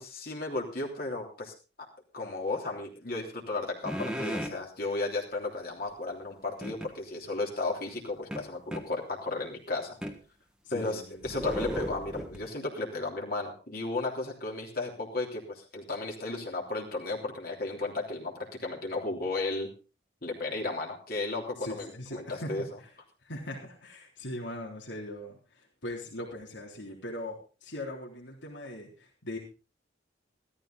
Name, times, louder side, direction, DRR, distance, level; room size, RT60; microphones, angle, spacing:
voice 1, 0.0-1.5 2.1-10.0 10.7-19.7 20.2-22.6, left 2 dB, 50° left, -1 dB, 3.3 m, -34 dB
sound 1, 3.8-4.6 6.6-6.9 8.3-8.9 10.0-10.2 10.8-12.5, equal, 5° right, 1.5 m, -35 dB
voice 2, 10.6-11.3 21.6-22.9 23.2-29.4, left 1 dB, 70° left, -2 dB, 3.6 m, -40 dB
15.5 x 13.5 x 3.9 m, 0.33 s
head